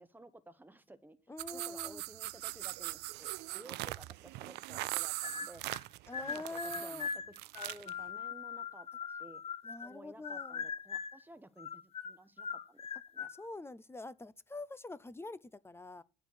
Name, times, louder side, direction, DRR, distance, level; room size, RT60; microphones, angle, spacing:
voice 1, 0.0-1.2 1.5-5.6 6.1-7.1 7.5-9.4 9.8-12.8 13.1-13.3, right 2 dB, 10° right, 1.1 m, -55 dB
voice 2, 1.3-2.0 6.1-7.1 9.6-10.6 13.4-16.0, left 2 dB, 15° left, 0.6 m, -45 dB
sound 1, 1.4-7.9, right 19 dB, 85° right, 0.4 m, -41 dB
sound 2, 5.2-5.8 6.1-10.0 10.2-11.2 11.6-13.4, left 6 dB, 35° left, 0.9 m, -41 dB
11.0 x 4.5 x 8.2 m
cardioid pair, 110°, 17 cm